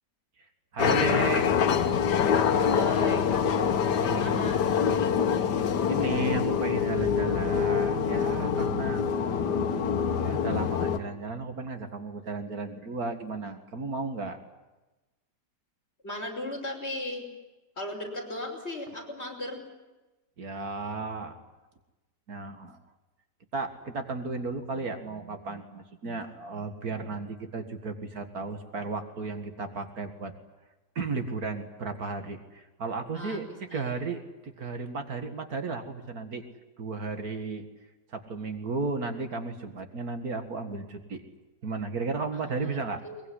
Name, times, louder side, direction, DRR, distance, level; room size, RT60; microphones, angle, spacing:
voice 1, 0.7-1.5 3.9-4.6 5.1-5.2 5.9-9.1 10.2-14.4 20.4-21.4 22.3-22.8 23.5-30.3 31.0-36.4 36.8-37.7 38.1-41.2 41.6-43.0, right 3 dB, 60° right, 7 dB, 2.4 m, -34 dB
sound 1, 0.8-11.0, left 7 dB, 85° left, 1.7 m, -25 dB
voice 2, 2.7-3.3 4.0-4.6 16.0-17.3 17.8-19.6 33.1-34.0 42.3-42.7 43.0-43.2, left 1 dB, 40° left, 1 dB, 5.8 m, -37 dB
22.5 x 21.5 x 10.0 m, 1.1 s
omnidirectional pair, 1.8 m